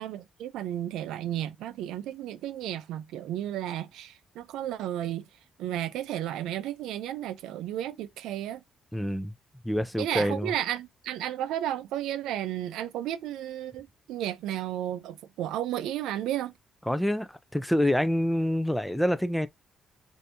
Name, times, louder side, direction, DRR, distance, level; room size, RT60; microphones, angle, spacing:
voice 1, 0.0-5.3 5.6-8.6 10.0-16.5, right 12 dB, 90° right, 0.4 m, -33 dB
voice 2, 8.9-9.3 9.6-10.5 16.9-19.5, equal, 5° left, 0.4 m, -27 dB
3.3 x 2.6 x 2.8 m
cardioid pair, 90°, 0 cm